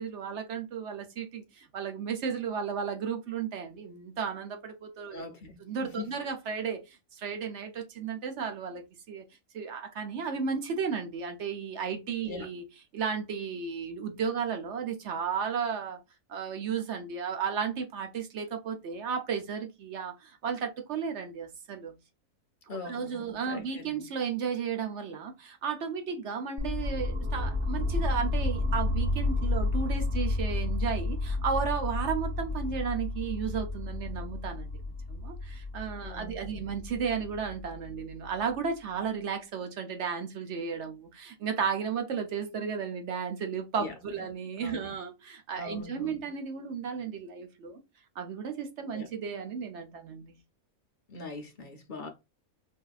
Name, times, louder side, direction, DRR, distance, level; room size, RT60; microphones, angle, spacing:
voice 1, 0.0-5.3 5.6-9.2 9.5-12.6 12.9-16.0 16.3-22.0 22.7-34.8 35.1-47.8 48.2-50.4, right 6 dB, 60° right, 0.8 m, -34 dB
voice 2, 5.1-5.5 6.0-6.1 12.2-12.5 22.7-24.1 36.0-36.7 43.8-44.2 44.6-44.9 45.6-46.3 48.9-49.1 51.1-52.1, left 3 dB, 50° left, 0.6 m, -42 dB
sound 1, 26.6-38.5, left 2 dB, 20° right, 0.6 m, -31 dB
5.6 x 2.7 x 2.4 m
omnidirectional pair, 1.6 m